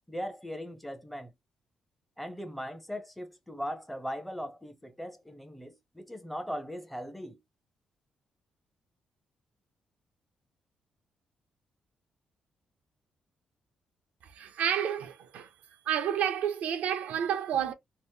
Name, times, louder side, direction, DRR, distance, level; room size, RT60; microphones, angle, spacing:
voice 1, 0.1-1.3 2.2-7.4, equal, 5° left, 0.6 m, -39 dB
voice 2, 14.2-15.5 15.8-17.7, right 9 dB, 85° right, 0.5 m, -30 dB
2.8 x 2.0 x 3.4 m
cardioid pair, 110°, 3 cm